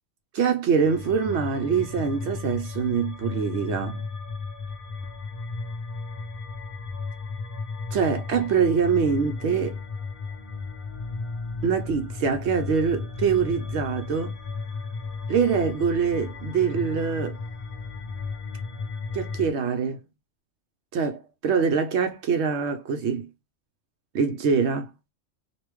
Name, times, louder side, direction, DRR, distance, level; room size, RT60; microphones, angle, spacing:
voice 1, 0.3-4.0 7.9-9.8 11.6-14.4 15.3-17.4 19.1-20.0 20.9-23.3 24.1-24.9, right 6 dB, 70° right, 0.8 m, -24 dB
sound 1, 0.8-19.5, left 4 dB, 50° left, 1.1 m, -34 dB
3.4 x 2.5 x 3.0 m
omnidirectional pair, 1.3 m